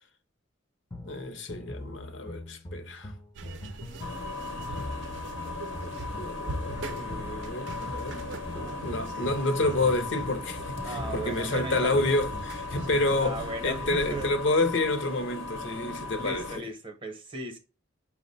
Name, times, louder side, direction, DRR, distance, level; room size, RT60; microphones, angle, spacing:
sound 1, 0.9-13.4, left 1 dB, 15° left, 0.5 m, -42 dB
voice 1, 1.0-3.1 5.8-8.2 8.5-16.6, left 2 dB, 60° left, 0.6 m, -29 dB
sound 2, 3.3-14.3, right 2 dB, 60° right, 0.5 m, -41 dB
sound 3, 4.0-16.6, left 3 dB, 85° left, 0.9 m, -38 dB
voice 2, 10.8-12.1 13.2-14.3 16.2-17.6, right 2 dB, 25° right, 0.7 m, -37 dB
5.7 x 2.1 x 3.9 m
head